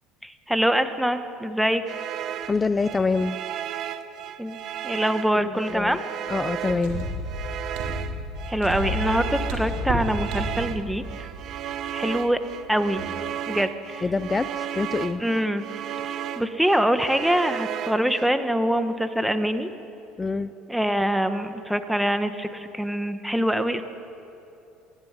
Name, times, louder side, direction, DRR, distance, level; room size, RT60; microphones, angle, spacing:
voice 1, 0.2-1.8 4.4-4.6 4.8-6.0 8.5-11.3 11.9-12.4 12.7-13.0 13.5-14.0 15.2-15.6 16.4-19.7 20.7-23.8, equal, 5° right, 9 dB, 1.4 m, -24 dB
sound 1, 1.9-18.3, right 10 dB, 55° right, 1.0 m, -34 dB
voice 2, 2.4-3.4 5.3-6.0 6.3-7.1 14.0-15.2 20.2-20.5, left 3 dB, 20° left, 12 dB, 0.6 m, -26 dB
sound 2, 6.7-12.7 13.0-13.1, equal, 75° right, 3.9 m, -31 dB
20.0 x 14.0 x 9.7 m, 2.8 s
supercardioid pair, 95°, 0 cm